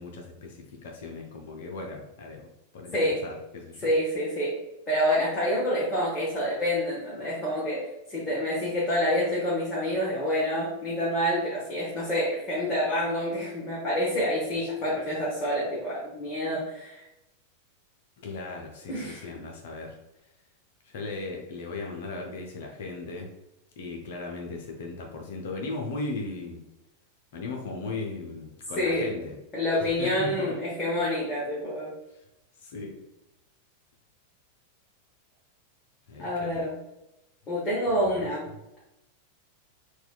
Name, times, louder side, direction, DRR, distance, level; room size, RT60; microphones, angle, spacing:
voice 1, 0.0-2.5 2.7-3.9 18.2-20.0 20.8-23.3 23.8-26.6 27.3-29.4 30.0-30.6 32.6-33.0 36.1-36.6 38.2-38.3, left 3 dB, 55° left, 1 dB, 0.5 m, -37 dB
voice 2, 3.8-4.6 4.9-7.8 8.1-17.0 18.9-19.2 28.8-29.1 29.5-31.9 36.2-36.8 37.5-38.5, equal, 25° left, -7 dB, 1.0 m, -27 dB
4.3 x 2.2 x 2.3 m, 0.91 s
figure-of-eight pair, 90°, 0 cm